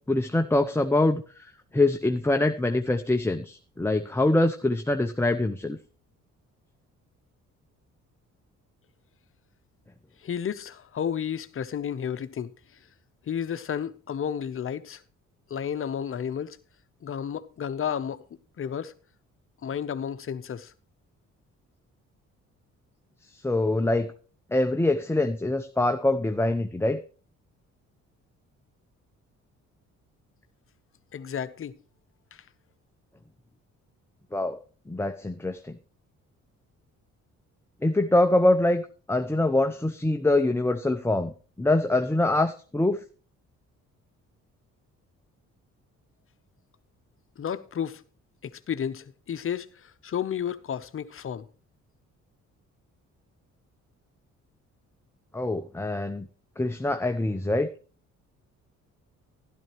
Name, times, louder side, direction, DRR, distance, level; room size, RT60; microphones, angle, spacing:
voice 1, 0.1-1.5 1.7-5.8 23.3-24.1 24.5-27.0 34.3-34.6 34.9-35.8 37.8-41.3 41.6-43.0 55.3-56.3 56.6-57.7, left 2 dB, 10° left, 0.7 m, -24 dB
voice 2, 10.2-12.5 13.3-15.0 15.5-16.6 17.0-18.2 18.6-18.9 19.6-20.7 31.1-31.8 32.3-32.4 47.4-48.0 48.4-51.5, left 8 dB, 45° left, 0.8 m, -32 dB
12.5 x 12.0 x 3.1 m
cardioid pair, 90°, 30 cm